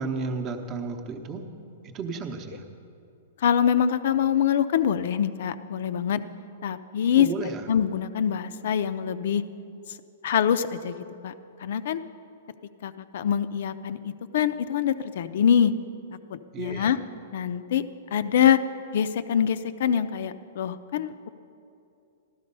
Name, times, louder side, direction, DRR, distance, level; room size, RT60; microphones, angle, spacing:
voice 1, 0.0-1.5 1.9-2.6 7.1-7.6 16.5-16.9, right 4 dB, 20° right, 5 dB, 0.9 m, -32 dB
voice 2, 3.4-6.2 6.6-7.3 7.7-9.4 9.9-10.0 10.2-10.9 11.2-11.3 11.6-12.0 12.8-15.7 16.3-17.0 17.3-17.8 18.1-18.6 18.9-21.3, left 8 dB, 55° left, 13 dB, 0.5 m, -24 dB
14.5 x 12.5 x 5.4 m, 2.7 s
hypercardioid pair, 170°, 0 cm